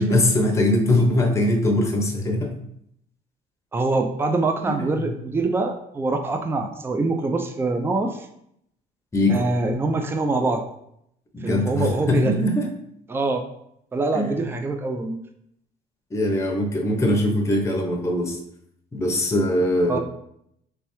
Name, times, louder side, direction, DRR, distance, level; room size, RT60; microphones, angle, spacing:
voice 1, 0.0-2.5 4.8-5.1 9.1-9.4 11.3-12.7 14.1-14.3 16.1-18.4 18.9-20.0, left 1 dB, 15° left, 1 dB, 0.7 m, -21 dB
voice 2, 3.7-8.3 9.3-10.6 11.4-12.4 13.1-13.4 13.9-15.2 19.9-20.0, right 3 dB, 15° right, 5 dB, 0.4 m, -24 dB
3.3 x 3.1 x 3.0 m, 0.74 s
cardioid pair, 110°, 17 cm